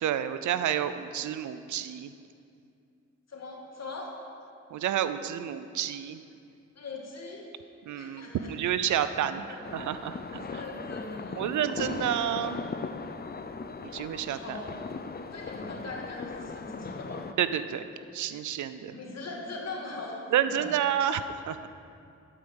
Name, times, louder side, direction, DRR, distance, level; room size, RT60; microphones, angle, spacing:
voice 1, 0.0-2.1 4.7-6.2 7.9-9.4 9.7-10.4 11.4-12.6 13.9-14.6 17.4-17.9 18.1-18.9 20.3-21.7, right 10 dB, 85° right, 12 dB, 0.5 m, -29 dB
voice 2, 3.3-4.1 6.8-7.5 8.0-8.5 9.1-9.9 10.3-11.5 14.3-14.7 15.3-17.3 18.9-20.2 20.4-20.7, left 3 dB, 60° left, -1 dB, 2.1 m, -41 dB
sound 1, 9.6-17.3, left 4 dB, 35° left, 0.6 m, -38 dB
12.0 x 5.0 x 7.0 m, 2.5 s
cardioid pair, 50°, 29 cm